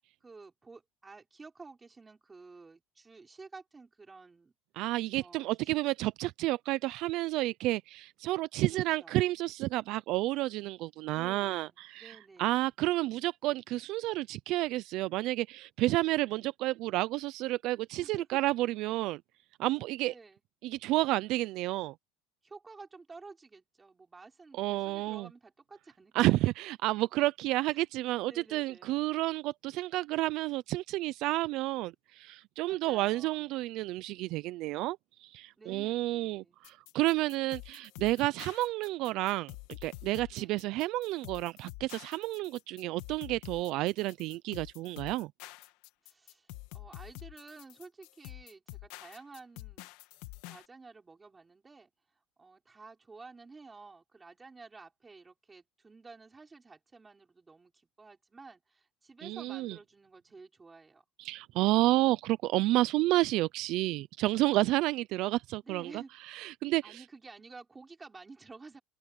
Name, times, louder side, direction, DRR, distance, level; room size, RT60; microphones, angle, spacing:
voice 1, 0.2-4.5 5.2-5.8 8.7-9.3 11.1-12.5 18.0-18.3 20.1-20.4 22.4-26.1 26.4-26.5 27.7-27.8 28.2-29.0 32.6-33.6 35.6-36.6 40.3-40.6 46.0-49.9 50.5-51.9 52.4-61.0 65.6-66.5 66.8-68.8, right 4 dB, 15° right, 5.9 m, -52 dB
voice 2, 4.8-19.2 19.6-20.1 20.6-21.9 24.6-25.3 26.1-45.3 59.2-59.8 61.2-67.0, right 18 dB, 50° right, 0.4 m, -30 dB
sound 1, 36.6-50.7, left 18 dB, 70° left, 2.3 m, -48 dB
cardioid pair, 160°, 0 cm